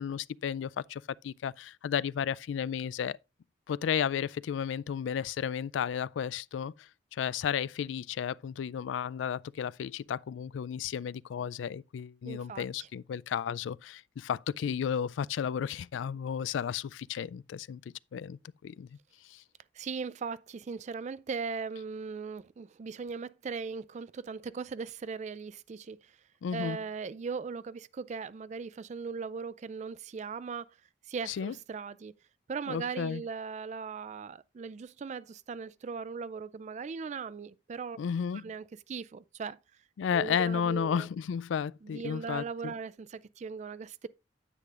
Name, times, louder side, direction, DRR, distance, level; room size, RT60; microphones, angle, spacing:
voice 1, 0.0-3.2 3.7-17.8 18.1-18.9 19.3-19.4 26.4-26.8 31.3-31.5 32.7-33.2 38.0-38.4 40.0-42.7, left 8 dB, 85° left, 0.3 m, -33 dB
voice 2, 12.2-12.9 19.7-26.2 26.5-30.8 31.1-32.1 32.5-38.0 38.4-39.6 40.1-41.1 41.8-44.1, right 5 dB, 40° right, 0.3 m, -39 dB
9.8 x 8.4 x 2.4 m
head